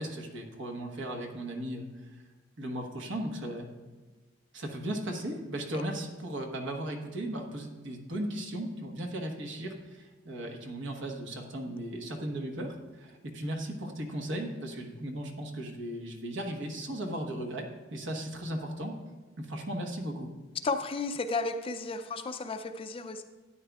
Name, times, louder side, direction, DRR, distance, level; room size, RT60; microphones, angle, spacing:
voice 1, 0.0-2.0 2.6-3.7 4.5-19.0 19.4-20.3, right 1 dB, 65° right, 3 dB, 1.2 m, -36 dB
voice 2, 20.6-23.2, left 3 dB, 30° left, 8 dB, 0.4 m, -33 dB
13.0 x 9.1 x 2.4 m, 1.3 s
head